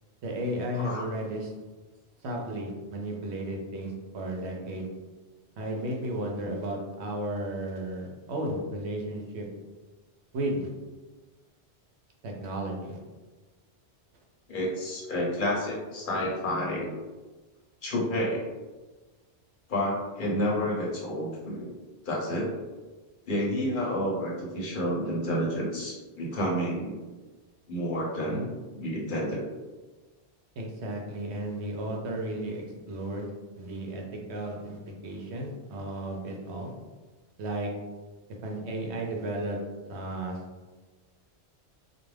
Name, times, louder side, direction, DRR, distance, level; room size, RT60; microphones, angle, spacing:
voice 1, 0.2-1.5 2.2-4.9 5.6-9.5 10.3-10.7 12.2-13.0 30.6-33.3 33.6-34.0 34.3-34.8 35.0-36.7 37.4-37.7 38.4-39.6 39.9-40.4, right 1 dB, 80° right, 0 dB, 0.9 m, -33 dB
voice 2, 14.5-16.9 17.8-18.4 19.7-21.7 22.0-22.5 23.3-27.0 27.7-29.4, equal, 55° left, -4 dB, 0.8 m, -30 dB
2.4 x 2.2 x 3.2 m, 1.3 s
omnidirectional pair, 1.1 m